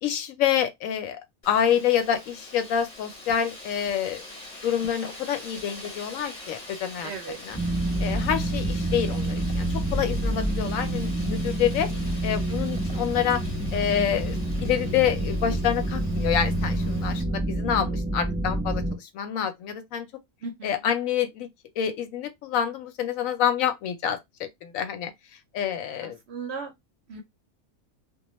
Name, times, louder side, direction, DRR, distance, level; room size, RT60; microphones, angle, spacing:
voice 1, 0.0-1.2 1.4-4.2 4.6-7.6 8.0-11.9 12.2-13.4 13.7-20.1 20.6-21.5 21.8-25.1 25.5-26.2, left 9 dB, 75° left, 1.0 m, -27 dB
Wind, 1.4-17.2, left 2 dB, 35° left, 0.7 m, -44 dB
voice 2, 7.0-7.4 20.4-20.8 26.0-26.7 27.1-27.2, right 5 dB, 65° right, 0.7 m, -36 dB
sound 1, 7.5-18.9, right 1 dB, 5° left, 1.0 m, -28 dB
2.3 x 2.2 x 2.9 m
omnidirectional pair, 1.5 m